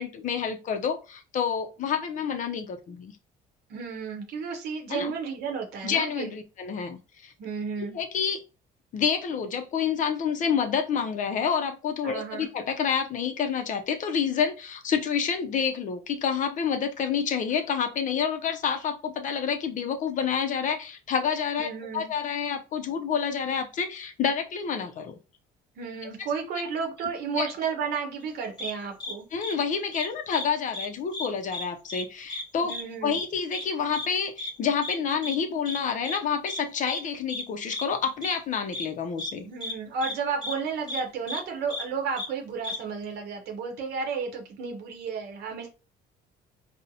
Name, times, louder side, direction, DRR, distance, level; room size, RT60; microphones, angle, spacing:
voice 1, 0.0-3.1 4.9-5.1 5.8-7.3 7.9-8.4 8.9-25.2 26.0-26.1 27.4-27.5 29.3-32.7 33.0-39.4, left 7 dB, 50° left, 0.4 m, -28 dB
voice 2, 3.7-6.4 7.4-8.0 12.0-12.5 21.6-22.1 25.8-29.3 32.6-33.2 39.4-45.7, right 5 dB, 70° right, 0.7 m, -32 dB
sound 1, 28.6-28.7 29.0-29.1 29.4-29.5 29.9-30.5 30.7-30.9 31.1-31.6 31.9-32.0 32.3-32.4 32.7-32.8 33.1-33.2 33.5-33.6 33.9-34.1 34.4-34.5 34.8-35.0 35.2-35.4 35.7-35.8 36.0-36.2 36.5-36.6 36.9-37.0 37.3-37.4 37.7-37.8 38.2-38.3 38.7-38.9 39.2-39.3 39.6-39.7 40.0-40.1 40.4-40.5 40.9-41.0 41.3-41.4 41.7-41.8 42.2-42.3 42.6-42.8, left 2 dB, 25° left, 0.8 m, -34 dB
3.8 x 2.0 x 2.7 m
cardioid pair, 110°, 17 cm